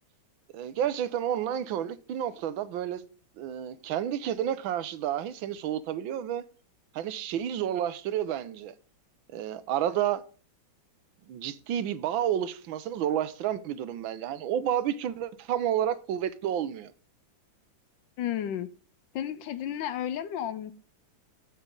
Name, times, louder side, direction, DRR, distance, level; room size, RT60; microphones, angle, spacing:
voice 1, 0.5-3.0 3.4-6.5 6.9-8.7 9.3-10.2 11.3-16.9, right 10 dB, 80° right, 1.5 m, -30 dB
voice 2, 18.2-18.7 19.1-20.7, left 10 dB, 75° left, 1.3 m, -32 dB
8.8 x 8.3 x 3.7 m
omnidirectional pair, 2.2 m